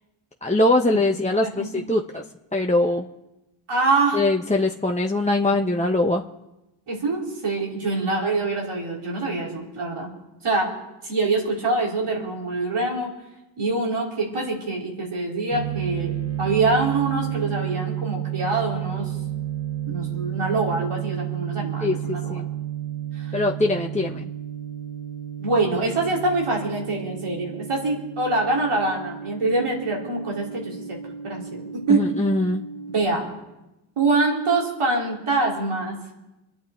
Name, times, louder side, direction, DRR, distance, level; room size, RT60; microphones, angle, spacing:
voice 1, 0.4-2.2 2.5-3.1 4.1-6.2 21.8-22.5 23.3-24.3 31.9-32.6, left 2 dB, 15° left, 1 dB, 1.1 m, -22 dB
voice 2, 3.7-4.2 6.9-10.1 10.4-10.7 11.0-13.1 13.6-19.1 19.9-22.3 23.1-23.4 25.4-31.0 31.2-32.0 32.9-33.3 34.0-36.0, right 3 dB, 80° right, -2 dB, 4.1 m, -25 dB
sound 1, 15.5-33.0, right 11 dB, 30° right, 1.5 m, -32 dB
25.0 x 9.5 x 4.5 m, 0.97 s
cardioid pair, 45°, 49 cm